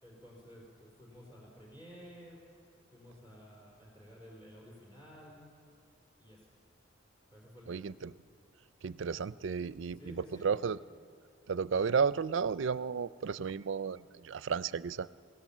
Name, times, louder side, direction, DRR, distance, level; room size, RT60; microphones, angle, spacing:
voice 1, 0.0-2.4 2.9-5.4 6.2-6.4 7.3-7.9 10.0-10.6, equal, 25° left, -2 dB, 4.5 m, -53 dB
voice 2, 7.7-8.1 8.8-10.8 11.5-15.1, right 6 dB, 70° right, 17 dB, 0.4 m, -33 dB
28.5 x 17.0 x 7.3 m, 2.4 s
head